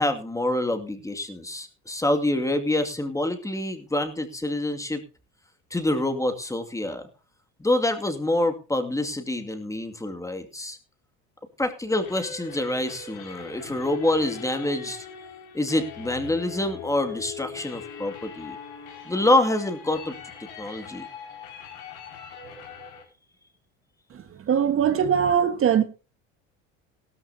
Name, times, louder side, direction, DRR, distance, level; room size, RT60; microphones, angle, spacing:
voice 1, 0.0-5.0 5.7-7.0 7.6-10.8 11.6-15.1 15.5-18.6 19.1-20.2 20.6-21.1, left 1 dB, 10° left, 2.3 m, -26 dB
sound 1, 11.9-23.0, left 7 dB, 80° left, 5.4 m, -41 dB
voice 2, 24.1-25.8, right 8 dB, 40° right, 1.5 m, -22 dB
16.5 x 13.5 x 2.8 m
supercardioid pair, 95°, 33 cm